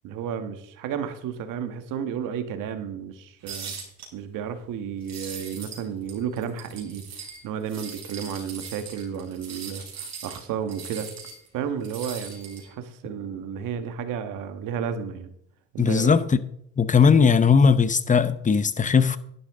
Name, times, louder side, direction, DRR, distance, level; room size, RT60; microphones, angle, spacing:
voice 1, 0.0-3.7 4.1-11.1 11.5-15.3 15.7-16.1, right 7 dB, 65° right, 1.7 m, -32 dB
sound 1, 3.5-4.1 5.0-5.8 6.1-7.4 7.7-11.5 11.8-12.7, right 6 dB, 50° right, 4.8 m, -40 dB
voice 2, 15.8-16.2 16.8-19.2, left 6 dB, 20° left, 0.9 m, -18 dB
11.5 x 11.5 x 3.8 m
supercardioid pair, 80°, 34 cm